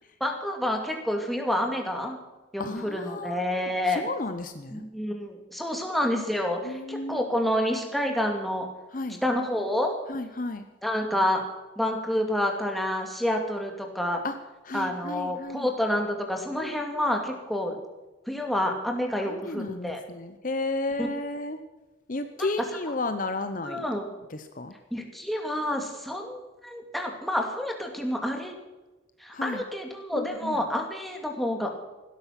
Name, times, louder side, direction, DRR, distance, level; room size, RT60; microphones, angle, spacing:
voice 1, 0.2-2.2 2.5-4.1 4.7-8.7 9.2-10.0 10.8-11.4 11.8-14.2 14.7-17.8 18.3-20.0 21.0-21.1 22.4-22.5 23.6-24.1 24.9-28.5 29.2-31.8, left 1 dB, ahead, 2 dB, 2.4 m, -28 dB
voice 2, 2.6-4.8 6.6-7.2 8.9-9.2 10.1-10.7 14.2-14.3 14.7-15.7 16.6-17.1 19.2-21.6 22.1-23.8 24.3-24.7 29.3-29.6 30.1-30.6, left 2 dB, 45° left, 9 dB, 0.8 m, -33 dB
16.5 x 12.5 x 6.0 m, 1.1 s
head